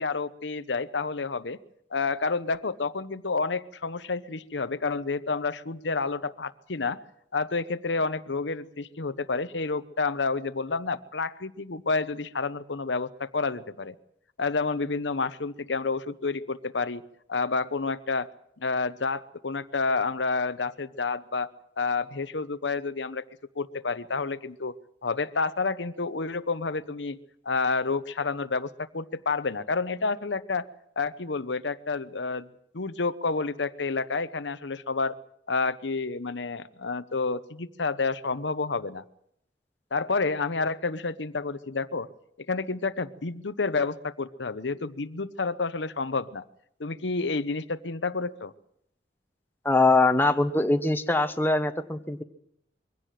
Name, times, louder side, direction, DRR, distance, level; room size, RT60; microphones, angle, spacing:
voice 1, 0.0-1.6 1.9-7.0 7.3-13.9 14.4-17.0 17.3-18.3 18.6-21.5 21.8-23.2 23.6-24.8 25.0-27.2 27.4-30.6 31.0-32.5 32.7-35.2 35.5-39.0 39.9-42.1 42.5-46.4 46.8-48.5, left 4 dB, 85° left, 12 dB, 1.0 m, -29 dB
voice 2, 49.6-52.2, left 2 dB, 10° left, 7 dB, 1.2 m, -22 dB
23.0 x 17.0 x 7.7 m, 0.73 s
head